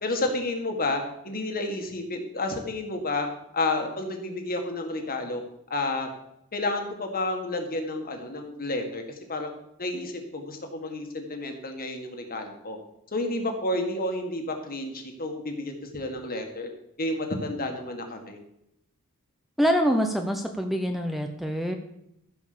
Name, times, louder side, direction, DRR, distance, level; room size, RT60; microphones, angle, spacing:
voice 1, 0.0-3.3 3.5-5.4 5.7-6.1 6.5-9.0 9.3-9.5 9.8-12.8 13.1-16.7 17.0-18.4, left 2 dB, 40° left, 4 dB, 1.8 m, -30 dB
voice 2, 19.6-21.8, equal, ahead, 4 dB, 0.7 m, -25 dB
14.5 x 5.3 x 6.8 m, 0.80 s
head